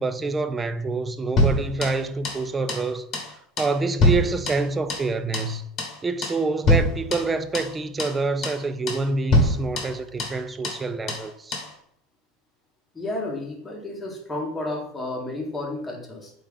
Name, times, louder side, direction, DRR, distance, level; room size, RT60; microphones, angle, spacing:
voice 1, 0.0-3.1 3.6-5.7 6.0-11.6, right 3 dB, 20° right, 0.3 m, -27 dB
sound 1, 1.4-2.4 2.7-2.9 3.1-3.3 3.6-5.1 5.3-5.5 5.8-6.0 6.2-6.4 6.7-7.7 8.0-8.2 8.4-8.6 8.9-9.1 9.3-10.4 10.6-10.8 11.1-11.3 11.5-11.7, left 1 dB, 40° left, 1.1 m, -24 dB
voice 2, 12.9-16.3, left 2 dB, 15° left, 1.2 m, -31 dB
3.9 x 3.3 x 3.5 m
figure-of-eight pair, 75°, 0 cm